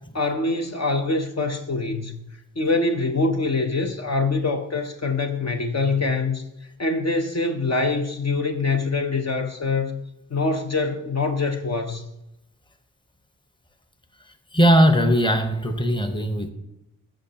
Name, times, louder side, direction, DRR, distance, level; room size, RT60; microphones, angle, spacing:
voice 1, 0.1-2.2 2.6-6.4 6.8-10.0 10.3-12.0, left 3 dB, 45° left, 4 dB, 0.8 m, -24 dB
voice 2, 14.5-16.5, equal, 15° left, 7 dB, 1.0 m, -19 dB
14.0 x 6.4 x 2.9 m, 0.89 s
cardioid pair, 55°, 35 cm